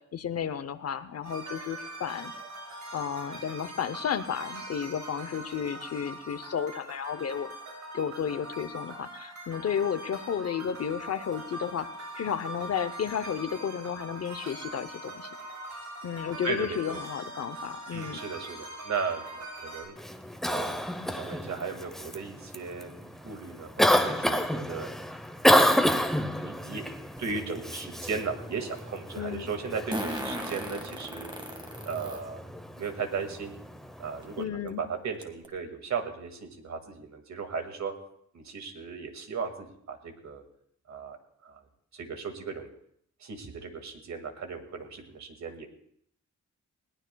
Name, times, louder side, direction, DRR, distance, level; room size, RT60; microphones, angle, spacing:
voice 1, 0.0-2.3 2.9-7.5 7.9-11.9 12.2-15.3 16.0-18.2 29.2-29.5 34.4-34.8, left 8 dB, 55° left, 13 dB, 0.7 m, -32 dB
sound 1, 1.2-19.8, right 2 dB, 90° right, 7.2 m, -42 dB
voice 2, 16.4-17.0 17.9-19.9 20.5-24.9 25.5-26.8 27.2-31.3 31.9-33.5 34.0-37.9 38.3-40.4 40.9-41.6 41.9-42.7 43.2-45.7, right 5 dB, 65° right, 5 dB, 2.0 m, -36 dB
Cough, 20.0-34.4, equal, ahead, 0.7 m, -30 dB
Fart, 27.2-27.3 29.9-32.2 32.8-32.9 34.2-34.3 34.7-34.8 35.2-35.5, right 1 dB, 15° right, 1.7 m, -36 dB
21.0 x 18.5 x 2.3 m, 0.70 s
wide cardioid pair, 175°, 30 cm